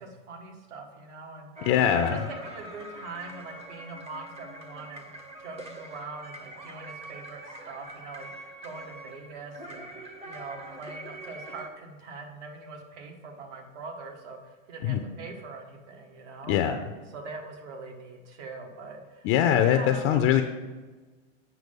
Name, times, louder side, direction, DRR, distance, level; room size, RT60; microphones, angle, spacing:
voice 1, 0.0-5.1 5.4-16.6 17.1-19.3 19.6-20.1, right 3 dB, 60° right, 3 dB, 1.9 m, -42 dB
sound 1, 1.6-11.7, right 1 dB, 15° right, 0.8 m, -44 dB
voice 2, 1.7-2.2 14.8-15.0 16.5-16.8 19.2-20.4, left 10 dB, 30° left, 7 dB, 0.5 m, -22 dB
8.1 x 5.8 x 5.3 m, 1.3 s
hypercardioid pair, 130°, 40 cm